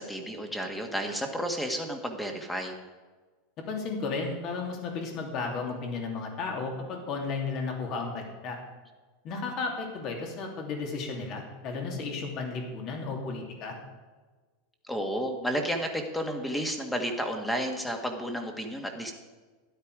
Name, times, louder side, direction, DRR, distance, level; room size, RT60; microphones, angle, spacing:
voice 1, 0.0-2.7 14.9-19.1, equal, 5° left, 4 dB, 1.8 m, -32 dB
voice 2, 3.6-8.6 9.2-13.7, left 4 dB, 45° left, 2 dB, 3.0 m, -34 dB
12.5 x 11.0 x 4.9 m, 1.3 s
supercardioid pair, 140°, 0 cm